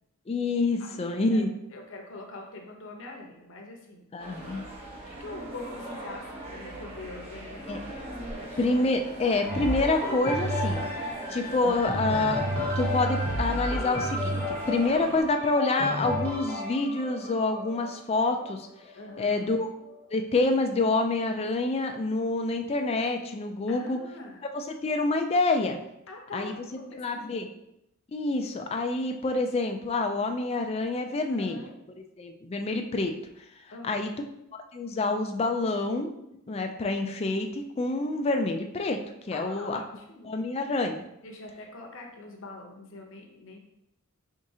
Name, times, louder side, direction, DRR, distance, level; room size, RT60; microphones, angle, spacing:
voice 1, 0.3-1.5 4.1-4.6 7.7-7.8 8.6-10.9 11.3-12.4 12.8-18.7 19.2-19.7 20.1-24.0 24.5-25.8 26.3-26.5 26.9-27.5 28.1-31.6 32.2-33.1 33.8-34.1 34.5-36.1 36.5-39.0 39.3-39.8 40.2-41.0, left 2 dB, 25° left, 5 dB, 0.3 m, -27 dB
voice 2, 0.8-1.4 1.7-4.0 5.1-7.9 8.2-8.6 14.8-15.0 18.9-19.4 23.7-24.4 26.1-27.5 31.3-31.7 33.7-34.1 39.3-40.4 41.2-43.6, left 2 dB, 60° left, 1 dB, 0.8 m, -44 dB
sound 1, 4.2-15.2, right 1 dB, 25° right, 0.9 m, -41 dB
sound 2, 9.5-19.3 19.9-20.0, equal, 10° left, 0.9 m, -31 dB
4.7 x 3.6 x 2.8 m, 0.81 s
head